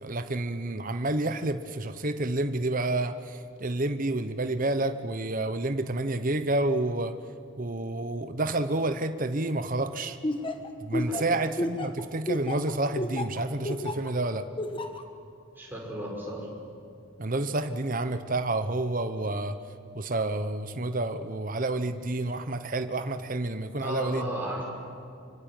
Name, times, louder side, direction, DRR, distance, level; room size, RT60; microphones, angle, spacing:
voice 1, 0.0-7.1 7.6-10.2 10.8-14.5 17.2-19.6 19.9-24.3, right 2 dB, 40° right, 9 dB, 1.0 m, -29 dB
Laughter, 10.2-14.1 14.6-15.0, left 1 dB, 25° left, 1.5 m, -31 dB
voice 2, 15.6-16.5 23.8-24.6, equal, 10° right, -3 dB, 5.9 m, -34 dB
25.0 x 24.5 x 9.0 m, 2.5 s
head